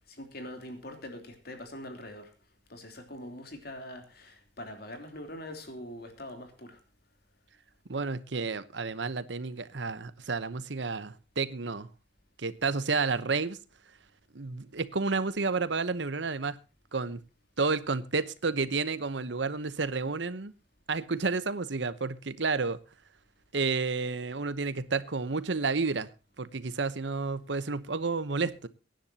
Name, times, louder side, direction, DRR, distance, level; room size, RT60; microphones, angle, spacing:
voice 1, 0.1-2.3 2.7-6.8, left 1 dB, 55° left, 3.2 m, -43 dB
voice 2, 7.9-11.9 12.4-13.6 14.3-16.6 16.9-17.2 17.6-20.5 20.9-22.8 23.5-26.1 26.4-28.7, right 4 dB, 75° right, 0.9 m, -31 dB
23.0 x 10.5 x 2.8 m
head